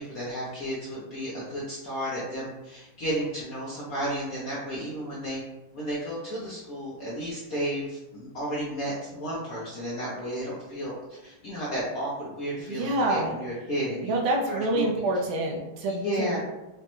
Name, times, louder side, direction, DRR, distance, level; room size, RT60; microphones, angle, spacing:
voice 1, 0.0-5.4 5.7-14.1 14.5-14.9 15.9-16.4, equal, 65° left, -6 dB, 0.9 m, -33 dB
voice 2, 12.7-13.3 14.0-16.3, right 1 dB, 75° right, 0 dB, 1.3 m, -27 dB
4.9 x 2.1 x 3.0 m, 1.0 s
omnidirectional pair, 2.4 m